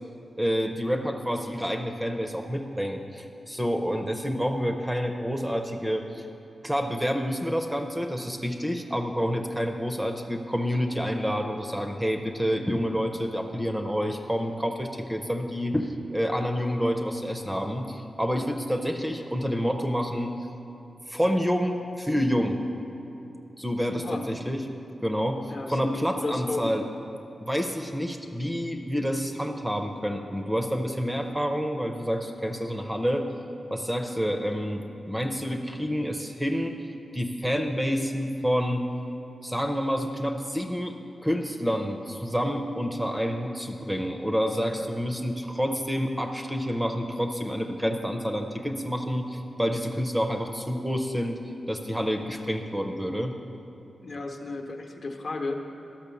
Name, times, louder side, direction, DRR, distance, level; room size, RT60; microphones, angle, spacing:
voice 1, 0.4-6.2 6.6-20.3 21.1-22.6 23.6-24.6 25.0-25.4 25.7-26.9 27.4-33.3 33.7-36.7 37.1-38.9 39.4-40.9 41.2-51.4 51.7-53.3, equal, 5° right, 4 dB, 0.5 m, -28 dB
voice 2, 23.9-24.3 25.5-26.7 54.0-55.7, left 3 dB, 55° left, 3 dB, 0.8 m, -33 dB
12.0 x 5.8 x 7.0 m, 2.8 s
wide cardioid pair, 145°, 0 cm